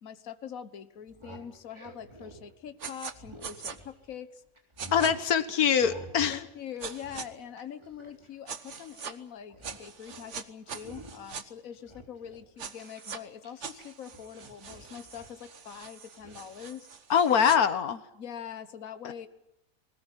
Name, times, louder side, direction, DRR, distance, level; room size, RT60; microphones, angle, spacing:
voice 1, 0.0-4.4 4.9-5.1 6.3-16.9 18.1-19.3, left 8 dB, 70° left, 11 dB, 1.6 m, -43 dB
sound 1, 1.0-4.2 4.6-5.2 5.8-6.4 6.7-9.1 9.4-9.8 10.1-10.3 10.7-11.3 11.7-13.8 14.1-15.4 16.2-16.4, right 1 dB, 20° right, 3.6 m, -49 dB
sound 2, 2.8-3.1 3.4-3.8 4.8-5.1 6.8-7.3 8.5-9.1 9.6-11.4 12.6-13.2 13.6-17.6, right 6 dB, 55° right, 1.5 m, -42 dB
voice 2, 4.9-6.4 17.1-18.0 19.0-19.1, left 7 dB, 85° left, 11 dB, 1.7 m, -24 dB
21.0 x 19.0 x 9.9 m, 0.80 s
omnidirectional pair, 1.5 m